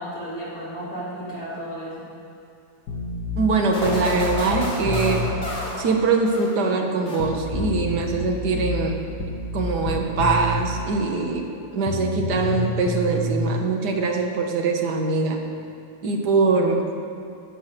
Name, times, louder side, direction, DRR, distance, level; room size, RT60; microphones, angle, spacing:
voice 1, 0.0-2.1, equal, 60° left, -6 dB, 3.1 m, -33 dB
sound 1, 2.9-5.5 7.2-10.8 11.9-13.5, left 2 dB, 80° left, 1.6 m, -28 dB
voice 2, 3.4-5.3 5.8-9.0 9.5-11.4 11.7-15.4 16.0-16.9, right 4 dB, 85° right, 2 dB, 1.7 m, -22 dB
sound 2, 3.7-6.7 7.1-7.7, left 1 dB, 45° left, 2.6 m, -32 dB
15.5 x 5.9 x 6.5 m, 2.5 s
omnidirectional pair, 1.7 m